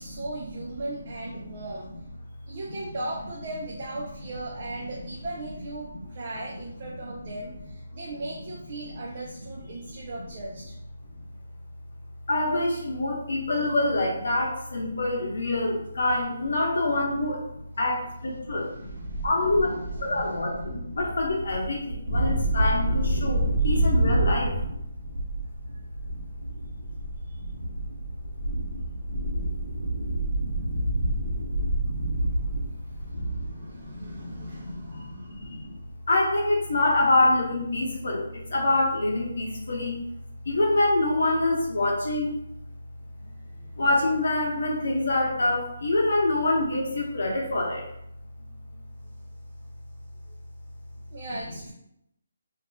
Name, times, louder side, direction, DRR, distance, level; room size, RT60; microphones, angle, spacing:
voice 1, 0.0-1.9 2.5-10.7 18.6-19.3 19.6-20.4 23.6-23.9 33.0-35.6 43.6-43.7 50.3-50.4 51.1-51.7, right 2 dB, 30° right, -3 dB, 0.3 m, -38 dB
voice 2, 9.7-10.2 12.3-17.4 17.8-24.6 33.1-35.8 36.1-40.0 40.4-42.3 43.2-43.3 43.8-47.8, left 2 dB, 65° left, -1 dB, 0.9 m, -26 dB
sound 1, 18.9-33.5, right 1 dB, 85° right, 0.7 m, -28 dB
2.4 x 2.1 x 3.3 m, 0.78 s
hypercardioid pair, 175°, 0 cm